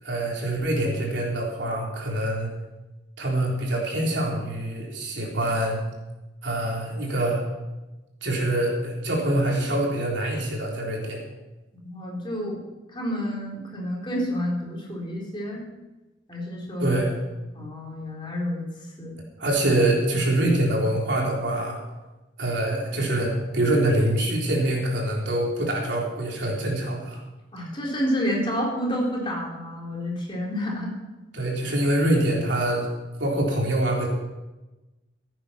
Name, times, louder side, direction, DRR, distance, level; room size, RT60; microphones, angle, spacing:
voice 1, 0.0-2.5 3.2-5.8 6.4-7.4 8.2-11.2 16.8-17.1 19.4-21.8 22.4-27.2 31.3-32.9 33.2-34.1, right 1 dB, 70° right, -2 dB, 3.8 m, -25 dB
voice 2, 11.8-12.6 12.9-15.7 16.3-17.0 17.5-18.7 19.0-19.2 27.5-30.9, equal, 25° left, -2 dB, 3.8 m, -29 dB
16.0 x 9.0 x 5.8 m, 1.1 s
head